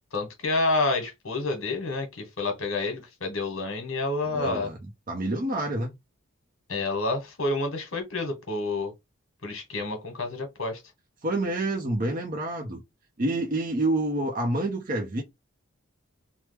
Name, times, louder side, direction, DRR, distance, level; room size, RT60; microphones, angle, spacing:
voice 1, 0.1-4.7 6.7-8.9 9.4-10.8, left 2 dB, 70° left, 1.2 m, -29 dB
voice 2, 4.3-4.8 5.1-5.9 11.2-12.8 13.2-15.2, right 1 dB, 40° right, 0.5 m, -28 dB
3.1 x 2.0 x 3.3 m
head